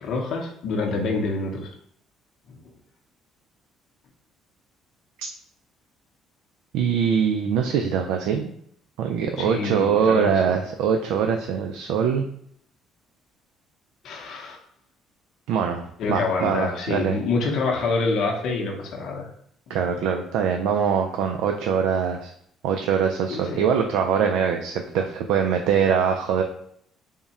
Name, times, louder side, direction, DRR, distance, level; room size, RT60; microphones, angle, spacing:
voice 1, 0.0-1.7 9.4-10.3 14.0-14.6 16.0-19.3 19.7-19.8 23.3-23.6, left 3 dB, 65° left, 0 dB, 0.7 m, -26 dB
voice 2, 6.7-8.5 9.0-12.3 15.5-17.2 19.7-22.3 22.6-26.4, right 7 dB, 90° right, 4 dB, 0.3 m, -23 dB
3.5 x 2.1 x 4.0 m, 0.67 s
cardioid pair, 125°, 0 cm